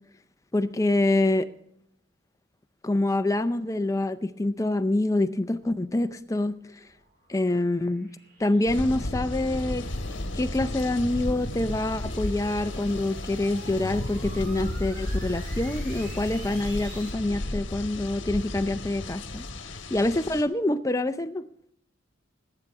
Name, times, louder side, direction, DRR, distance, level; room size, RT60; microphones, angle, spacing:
voice 1, 0.5-1.5 2.8-6.8 7.3-8.1 8.4-9.9 10.3-19.4 19.9-21.4, left 2 dB, 15° left, 11 dB, 0.5 m, -26 dB
sound 1, 6.3-17.1, right 1 dB, 40° right, 3.5 m, -49 dB
sound 2, 8.7-20.4, left 1 dB, 65° left, 1.3 m, -34 dB
18.5 x 8.9 x 4.6 m, 0.74 s
head